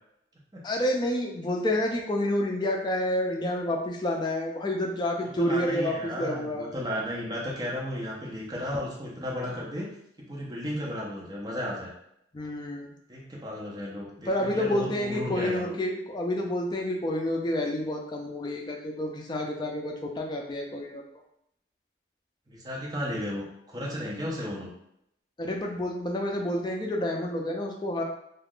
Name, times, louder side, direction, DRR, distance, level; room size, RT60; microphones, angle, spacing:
voice 1, 0.6-6.7 12.3-12.9 14.3-21.0 25.4-28.0, left 1 dB, 25° left, 1 dB, 0.4 m, -29 dB
voice 2, 5.2-9.9 10.2-11.9 13.1-15.7 22.5-24.7, equal, 20° right, -4 dB, 0.6 m, -34 dB
2.4 x 2.4 x 3.5 m, 0.77 s
head